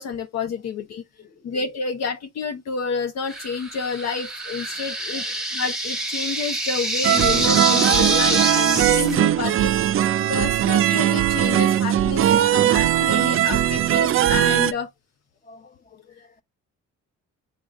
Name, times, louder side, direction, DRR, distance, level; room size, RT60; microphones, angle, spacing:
voice 1, 0.0-1.0 1.4-5.2 5.5-9.7 10.3-14.9, left 5 dB, 60° left, 0.6 m, -29 dB
sound 1, 3.3-9.2, right 1 dB, ahead, 1.1 m, -26 dB
voice 2, 5.1-5.4 12.2-14.2 15.4-16.4, left 3 dB, 30° left, 0.9 m, -51 dB
sound 2, 7.0-14.7, right 11 dB, 45° right, 0.4 m, -19 dB
5.2 x 3.5 x 2.4 m
cardioid pair, 90°, 30 cm